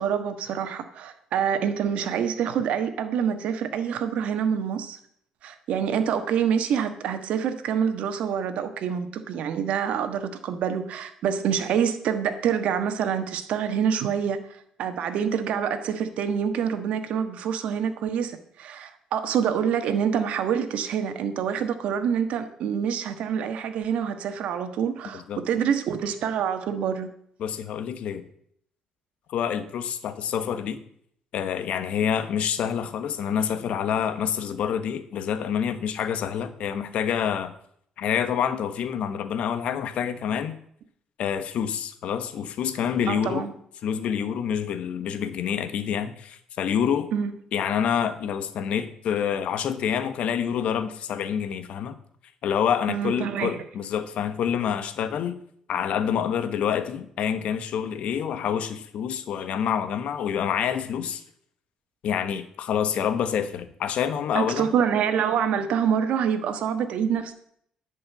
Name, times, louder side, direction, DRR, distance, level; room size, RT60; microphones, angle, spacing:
voice 1, 0.0-5.0 5.4-14.4 14.8-27.1 43.1-43.5 47.1-47.3 52.9-53.6 64.3-67.3, right 8 dB, 75° right, 8 dB, 1.3 m, -26 dB
voice 2, 27.4-28.2 29.3-30.8 31.3-37.5 38.0-40.6 41.2-43.5 43.8-47.1 47.5-52.0 52.4-55.4 55.7-61.2 62.0-64.8, left 8 dB, 70° left, 11 dB, 1.1 m, -27 dB
11.0 x 5.4 x 8.2 m, 0.66 s
cardioid pair, 110°, 2 cm